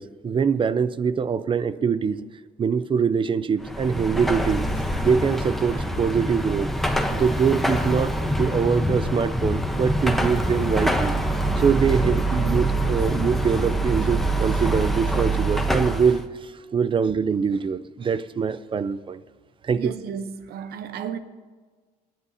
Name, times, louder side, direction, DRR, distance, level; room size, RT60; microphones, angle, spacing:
voice 1, 0.0-2.2 2.6-4.7 5.0-6.7 7.1-11.2 11.6-16.2 16.7-19.2 19.6-19.9, right 6 dB, 30° right, 0.5 m, -23 dB
Car passing by / Traffic noise roadway noise / Engine, 3.6-16.2, right 1 dB, ahead, 0.9 m, -25 dB
voice 2, 19.8-21.2, right 7 dB, 70° right, 0.9 m, -33 dB
25.5 x 9.7 x 2.8 m
cardioid pair, 110°, 17 cm